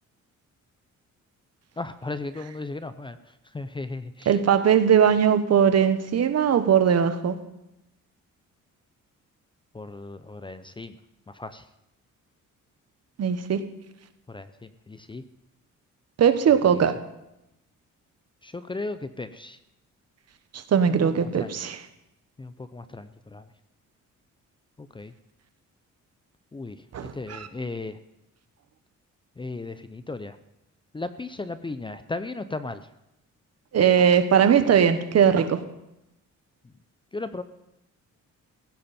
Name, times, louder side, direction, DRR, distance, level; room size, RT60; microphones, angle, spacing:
voice 1, 1.8-4.4 9.7-11.0 11.3-11.7 14.3-15.2 16.7-16.8 18.4-19.6 20.9-21.7 22.4-23.4 24.8-25.1 26.5-26.8 27.1-28.0 29.4-30.4 30.9-32.8 37.1-37.4, left 3 dB, 15° left, 11 dB, 0.6 m, -36 dB
voice 2, 4.3-7.3 13.2-13.6 16.2-16.9 20.5-21.8 26.9-27.5 33.7-35.6, right 8 dB, 55° right, 10 dB, 1.4 m, -20 dB
16.5 x 16.0 x 4.3 m, 0.88 s
cardioid pair, 135°, 31 cm